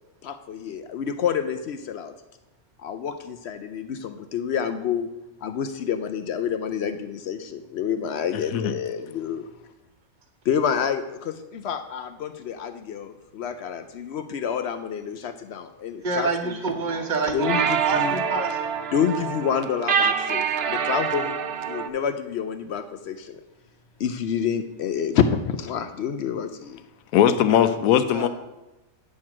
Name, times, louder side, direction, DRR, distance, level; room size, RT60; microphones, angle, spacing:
voice 1, 0.2-2.1 2.8-5.1 5.4-9.4 10.5-16.6 17.3-18.2 18.9-21.4 21.6-23.4 24.0-26.8, left 7 dB, 65° left, 9 dB, 0.7 m, -28 dB
voice 2, 8.3-8.7 27.1-28.3, left 10 dB, 85° left, 11 dB, 1.0 m, -20 dB
voice 3, 16.0-18.5 28.1-28.3, right 4 dB, 35° right, 5 dB, 1.0 m, -27 dB
sound 1, 16.9-21.9, right 7 dB, 60° right, 0.7 m, -26 dB
9.6 x 4.5 x 6.0 m, 1.0 s
omnidirectional pair, 1.5 m